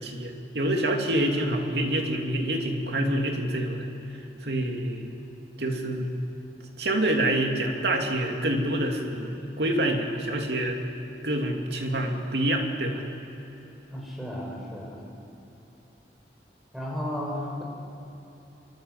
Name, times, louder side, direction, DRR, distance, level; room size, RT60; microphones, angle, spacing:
voice 1, 0.0-3.9 4.4-5.2 5.6-6.1 6.8-10.8 11.2-13.0, right 1 dB, 70° right, 2 dB, 2.9 m, -27 dB
voice 2, 13.9-15.0 16.7-17.6, left 1 dB, ahead, -3 dB, 5.9 m, -33 dB
25.0 x 24.0 x 8.3 m, 2.9 s
head